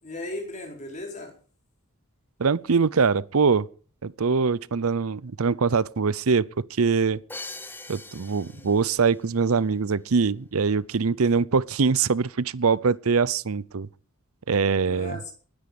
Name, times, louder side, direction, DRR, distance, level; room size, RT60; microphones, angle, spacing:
voice 1, 0.0-1.3 8.5-8.7 14.8-15.3, left 1 dB, 35° left, 4.6 m, -37 dB
voice 2, 2.4-3.7 4.0-6.5 6.8-7.2 7.9-13.9 14.5-15.2, right 5 dB, 80° right, 0.6 m, -23 dB
Crash cymbal, 7.3-9.2, left 2 dB, 10° left, 0.8 m, -41 dB
20.0 x 10.0 x 5.2 m
head